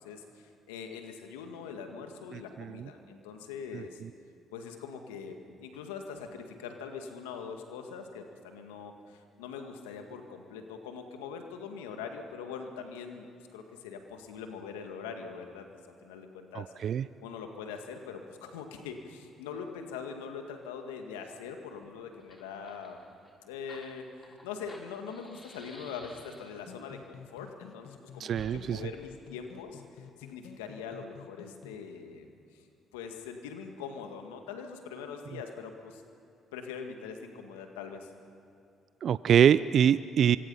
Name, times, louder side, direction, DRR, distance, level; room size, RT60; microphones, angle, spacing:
voice 1, 0.0-4.0 4.5-13.3 13.5-15.7 16.0-16.7 17.2-23.0 23.5-32.6 32.9-36.0 36.5-38.1, left 6 dB, 90° left, 5 dB, 1.9 m, -42 dB
voice 2, 2.3-2.9 3.7-4.1 16.5-17.1 28.2-28.9 39.0-40.4, right 9 dB, 60° right, 16 dB, 0.4 m, -25 dB
Fire, 21.8-21.9 22.1-26.7 28.3-28.5, left 1 dB, 15° left, 6.0 m, -53 dB
sound 1, 26.6-31.8, left 9 dB, 65° left, 1.1 m, -51 dB
25.0 x 24.5 x 5.6 m, 2.6 s
hypercardioid pair, 55°, 0 cm